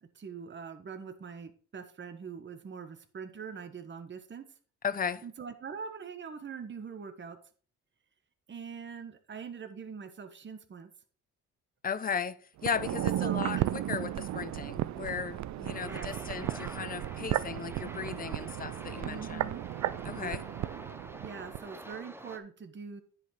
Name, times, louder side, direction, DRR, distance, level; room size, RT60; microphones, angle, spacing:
voice 1, 0.0-4.4 5.2-7.4 8.5-10.9 13.2-13.7 15.8-16.1 19.0-19.6 20.2-20.4 21.2-23.0, right 6 dB, 40° right, 1.3 m, -43 dB
voice 2, 4.8-5.2 11.8-19.4 20.0-20.4, left 6 dB, 30° left, 0.7 m, -36 dB
sound 1, 12.6-21.7 21.9-22.0, right 14 dB, 65° right, 0.5 m, -34 dB
sound 2, 15.6-22.4, right 1 dB, 10° right, 0.9 m, -47 dB
10.0 x 5.4 x 4.8 m
cardioid pair, 90°, 30 cm